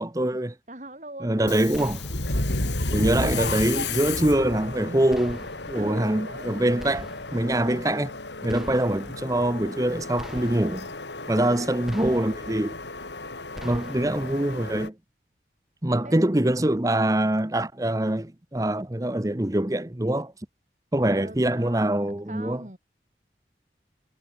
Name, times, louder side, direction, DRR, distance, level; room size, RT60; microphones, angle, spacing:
voice 1, 0.0-0.5 1.2-2.0 2.9-7.1 7.3-8.2 8.4-10.9 11.3-12.8 13.6-14.9 15.8-20.3 20.9-22.6, right 1 dB, 20° right, 0.8 m, -24 dB
voice 2, 0.7-1.9 5.7-7.1 11.2-11.7 13.6-13.9 16.0-16.3 21.1-21.9 22.3-22.8, right 1 dB, 40° right, 5.0 m, -41 dB
Subway metro underground, 1.4-14.9, left 2 dB, 85° left, 3.8 m, -33 dB
sound 1, 1.7-2.4 3.4-4.1 5.1-5.8 6.8-7.5 8.5-9.2 10.2-10.9 11.9-12.6 13.5-14.2, equal, ahead, 2.5 m, -42 dB
head